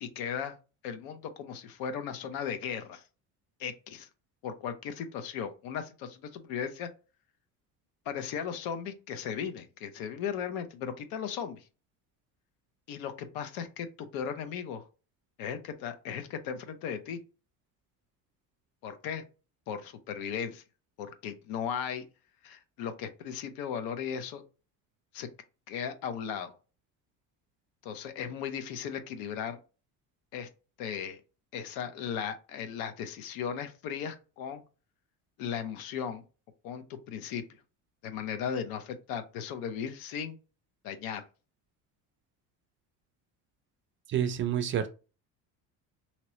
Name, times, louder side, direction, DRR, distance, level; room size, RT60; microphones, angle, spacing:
voice 1, 0.0-0.6 0.8-3.0 3.6-4.1 4.4-6.9 8.1-11.6 12.9-14.9 15.4-17.2 18.8-19.2 19.7-20.6 21.0-22.0 22.4-24.4 25.1-25.3 25.7-26.5 27.8-29.6 30.3-30.5 30.8-31.2 31.5-34.6 35.4-36.2 36.6-37.6 38.0-40.4 40.8-41.2, left 7 dB, 75° left, 0.7 m, -36 dB
voice 2, 44.1-44.9, right 9 dB, 35° right, 0.4 m, -28 dB
2.9 x 2.9 x 2.9 m
cardioid pair, 145°, 36 cm